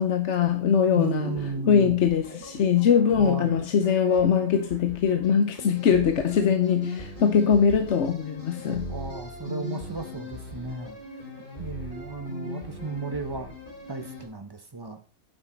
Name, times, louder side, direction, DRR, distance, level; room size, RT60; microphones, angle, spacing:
voice 1, 0.0-1.3 1.7-8.9, left 7 dB, 65° left, 1.1 m, -22 dB
voice 2, 0.9-2.1 3.2-3.5 8.9-11.0 11.6-13.5 13.9-15.0, right 3 dB, 20° right, 1.1 m, -34 dB
sound 1, 1.0-14.2, left 1 dB, 40° left, 3.6 m, -39 dB
9.2 x 7.8 x 4.5 m
omnidirectional pair, 1.3 m